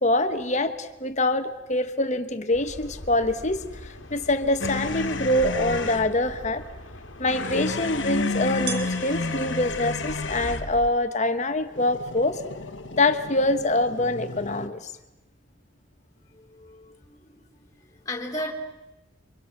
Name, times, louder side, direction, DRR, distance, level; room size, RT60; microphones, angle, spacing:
voice 1, 0.0-6.6 7.2-12.4 12.9-14.8, left 2 dB, 35° left, 9 dB, 1.4 m, -25 dB
sound 1, 2.5-10.9, left 1 dB, 85° left, 1.9 m, -41 dB
sound 2, 4.6-6.1 7.2-10.7 11.7-14.7, left 3 dB, 70° left, 1.5 m, -31 dB
sound 3, 8.6-14.2, right 7 dB, 60° right, 2.3 m, -43 dB
voice 2, 16.3-17.4 17.8-18.5, left 1 dB, 20° left, -1 dB, 3.4 m, -35 dB
28.5 x 25.0 x 6.0 m, 0.97 s
head